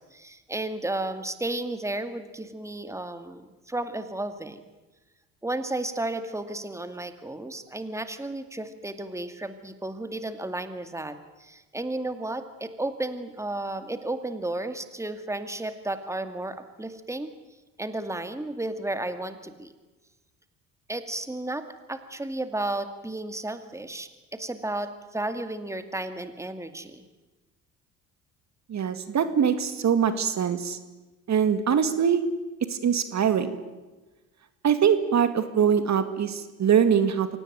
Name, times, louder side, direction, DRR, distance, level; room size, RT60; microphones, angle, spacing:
voice 1, 0.0-4.6 5.4-17.3 17.8-19.7 20.9-27.0, right 2 dB, 5° right, 9 dB, 2.4 m, -33 dB
voice 2, 28.7-30.8 31.3-32.2 32.7-33.6 34.6-37.3, right 7 dB, 45° right, 10 dB, 2.2 m, -23 dB
25.0 x 17.5 x 9.4 m, 1.2 s
hypercardioid pair, 65°, 38 cm